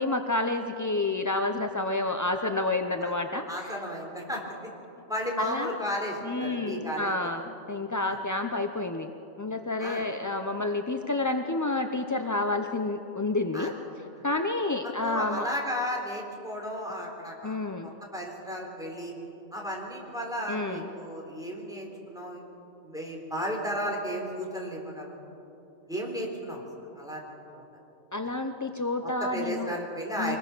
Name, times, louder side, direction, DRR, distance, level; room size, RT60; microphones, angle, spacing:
voice 1, 0.0-3.7 5.4-5.7 6.2-9.1 9.4-13.7 14.2-15.5 17.4-17.9 20.5-20.9 28.1-29.8 30.2-30.4, left 2 dB, 25° left, 5 dB, 0.4 m, -29 dB
voice 2, 3.5-4.7 5.1-7.1 9.8-10.0 13.5-13.7 15.0-17.6 17.8-19.1 19.5-22.4 22.8-25.2 25.9-27.2 27.5-27.6 29.0-30.4, equal, 5° right, -1 dB, 3.8 m, -34 dB
24.0 x 20.5 x 6.2 m, 2.9 s
omnidirectional pair, 1.4 m